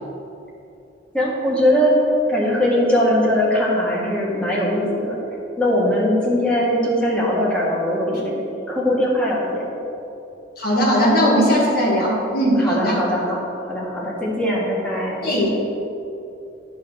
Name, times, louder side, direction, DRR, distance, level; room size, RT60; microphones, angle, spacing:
voice 1, 1.1-1.9 2.3-5.2 5.6-8.3 8.7-9.6 12.6-13.4 13.6-15.2, equal, 5° left, -5 dB, 1.5 m, -20 dB
voice 2, 10.6-13.0 15.2-15.5, equal, 50° left, -4 dB, 1.7 m, -18 dB
9.7 x 3.7 x 6.3 m, 2.8 s
head